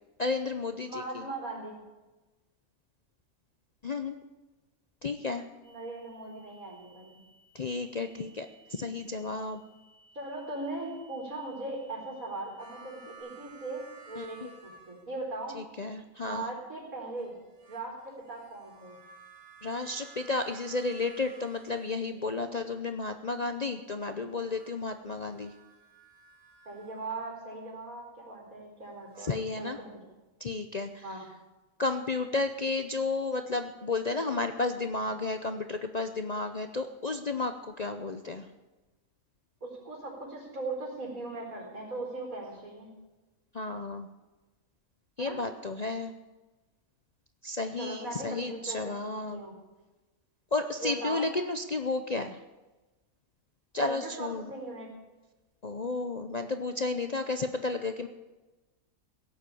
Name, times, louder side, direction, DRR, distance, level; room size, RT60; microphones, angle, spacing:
voice 1, 0.2-1.3 3.8-4.2 5.0-5.4 7.5-9.6 14.1-14.5 15.5-16.5 19.6-25.5 29.2-29.8 30.4-31.1 31.8-38.5 43.5-44.1 45.2-46.1 47.4-49.4 50.5-52.4 53.7-54.5 55.6-58.1, left 3 dB, 40° left, 7 dB, 0.6 m, -32 dB
voice 2, 0.9-1.8 5.6-7.2 10.1-15.6 16.2-17.3 17.7-19.0 26.6-29.9 31.0-31.3 39.6-42.9 45.2-45.4 47.8-49.5 50.8-51.3 53.8-54.9, right 2 dB, 75° right, -1 dB, 4.7 m, -39 dB
sound 1, 5.6-13.2, right 2 dB, 75° left, 7.4 m, -62 dB
sound 2, 12.6-15.4 17.2-22.4 24.3-27.1 28.8-29.3, right 4 dB, 15° right, 4.9 m, -54 dB
16.5 x 8.1 x 8.4 m, 1.1 s
omnidirectional pair, 1.5 m